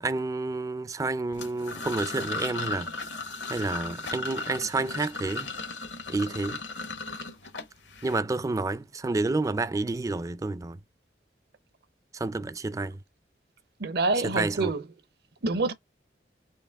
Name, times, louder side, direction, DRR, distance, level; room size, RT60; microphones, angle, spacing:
voice 1, 0.0-2.9 3.5-5.5 6.1-6.6 8.0-10.8 12.1-13.0 14.2-14.7, right 3 dB, 20° right, 0.3 m, -29 dB
sound 1, 1.3-8.2, left 3 dB, 90° left, 1.4 m, -36 dB
voice 2, 13.8-14.9 15.4-15.7, right 3 dB, 65° right, 0.7 m, -26 dB
4.5 x 2.9 x 3.4 m
head